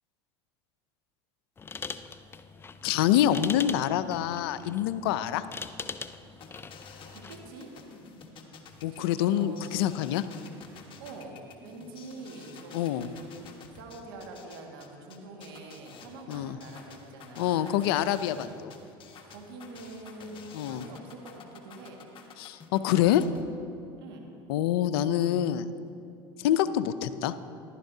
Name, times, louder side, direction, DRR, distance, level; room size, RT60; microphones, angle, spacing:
sound 1, 1.6-7.5, left 5 dB, 20° left, 0.4 m, -41 dB
voice 1, 2.8-5.5 8.8-10.3 12.7-13.1 16.3-16.6 17.4-18.7 20.5-20.8 22.4-23.2 24.5-25.7 26.4-27.3, left 11 dB, 80° left, 13 dB, 0.5 m, -26 dB
sound 2, 6.4-23.4, left 5 dB, 40° left, 1.3 m, -50 dB
voice 2, 7.1-7.7 8.9-9.8 11.0-17.8 19.2-22.0 24.0-24.2, right 2 dB, 80° right, 1 dB, 1.8 m, -45 dB
14.5 x 12.0 x 2.7 m, 2.7 s
supercardioid pair, 90°, 12 cm